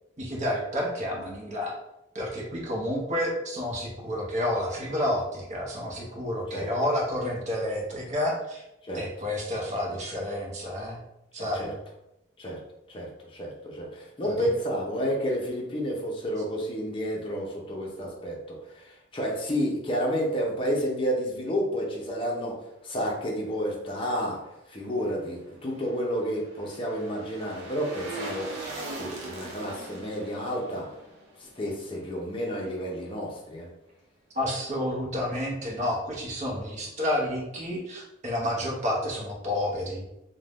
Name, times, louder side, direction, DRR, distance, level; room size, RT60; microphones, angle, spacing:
voice 1, 0.2-1.7 2.1-8.6 8.9-11.0 11.3-11.8 14.2-14.3 34.3-40.1, left 1 dB, 40° right, -2 dB, 0.7 m, -30 dB
voice 2, 11.4-11.7 12.4-12.6 12.9-22.5 22.8-24.4 24.7-28.6 28.9-30.9 31.6-33.7, equal, 30° left, -2 dB, 0.6 m, -30 dB
sound 1, 25.3-32.5 32.9-33.0, right 2 dB, 80° right, 0.7 m, -41 dB
2.6 x 2.2 x 3.3 m, 0.88 s
head